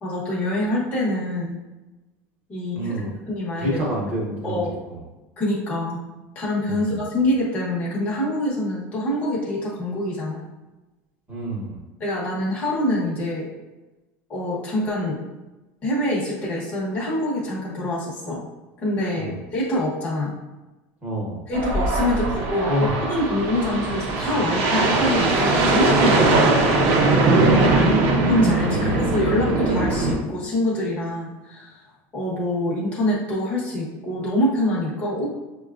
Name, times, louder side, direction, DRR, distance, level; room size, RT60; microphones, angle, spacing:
voice 1, 0.0-1.6 2.5-2.9 3.3-3.8 4.4-4.7 5.4-6.0 6.3-10.5 12.0-13.5 14.3-15.2 15.8-18.4 18.8-20.3 21.5-26.5 28.2-31.8 32.1-35.3, left 1 dB, 20° left, -7 dB, 1.0 m, -25 dB
voice 2, 2.7-3.1 3.6-5.0 6.7-6.9 11.3-11.8 19.2-19.4 21.0-21.4 22.1-22.3 22.7-22.9 27.3-27.5 28.7-28.9, equal, 20° right, -4 dB, 1.1 m, -28 dB
sound 1, 21.5-30.2, right 2 dB, 45° right, 0.7 m, -20 dB
6.4 x 2.3 x 2.5 m, 1.1 s
cardioid pair, 175°, 7 cm